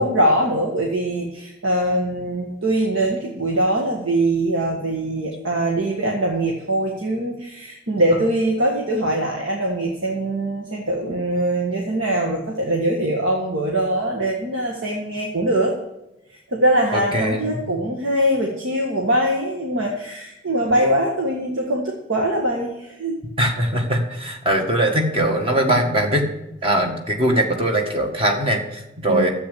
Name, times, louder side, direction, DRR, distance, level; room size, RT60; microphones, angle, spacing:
voice 1, 0.0-15.8 16.5-23.2 29.1-29.3, right 1 dB, 85° right, 0 dB, 1.6 m, -22 dB
voice 2, 16.9-17.6 23.4-26.3 26.6-29.3, right 1 dB, 30° right, 2 dB, 1.7 m, -21 dB
10.0 x 7.8 x 8.4 m, 0.90 s
head